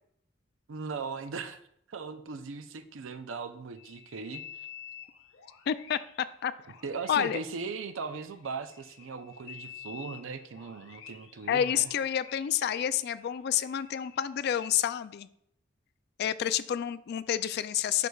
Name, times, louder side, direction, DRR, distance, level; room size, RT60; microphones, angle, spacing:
voice 1, 0.7-1.6 1.9-4.7 6.8-11.9, right 4 dB, 85° right, 10 dB, 0.5 m, -39 dB
sound 1, 3.8-14.7, left 9 dB, 80° left, 0.8 m, -50 dB
voice 2, 5.7-6.0 6.4-6.5 7.1-7.4 11.5-15.3 16.2-18.1, left 9 dB, 55° left, 15 dB, 0.3 m, -29 dB
10.5 x 4.9 x 2.3 m, 0.72 s
head